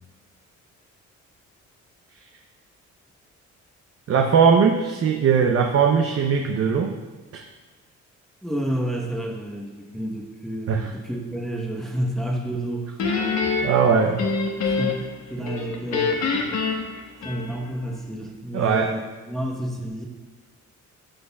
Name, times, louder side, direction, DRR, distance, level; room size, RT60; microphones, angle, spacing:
voice 1, 4.1-6.9 7.3-7.4 10.7-10.8 13.6-14.2 18.5-18.9, right 6 dB, 50° right, 2 dB, 0.7 m, -19 dB
voice 2, 8.4-13.0 14.0-14.2 14.7-16.4 17.2-20.0, right 1 dB, ahead, -1 dB, 1.0 m, -30 dB
Guitar, 13.0-15.1 15.5-17.8, left 4 dB, 65° left, 1.3 m, -25 dB
12.5 x 6.4 x 2.3 m, 1.3 s
cardioid pair, 90°, 30 cm